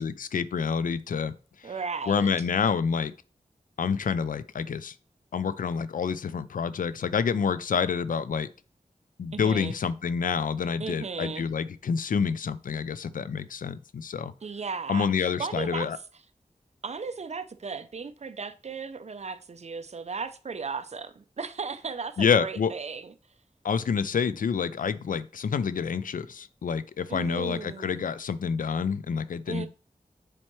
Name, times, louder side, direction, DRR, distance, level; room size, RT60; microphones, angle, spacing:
voice 1, 0.0-1.3 1.6-1.7 2.1-3.1 3.8-4.9 5.3-8.5 9.2-14.3 14.9-16.0 22.2-22.7 23.6-29.7, left 6 dB, 80° left, 0.4 m, -28 dB
voice 2, 1.6-2.3 9.3-9.7 10.8-11.5 14.4-15.9 16.8-23.1 27.1-28.1 29.5-29.7, right 5 dB, 55° right, 0.5 m, -36 dB
7.5 x 4.4 x 3.1 m
wide cardioid pair, 80°, 14 cm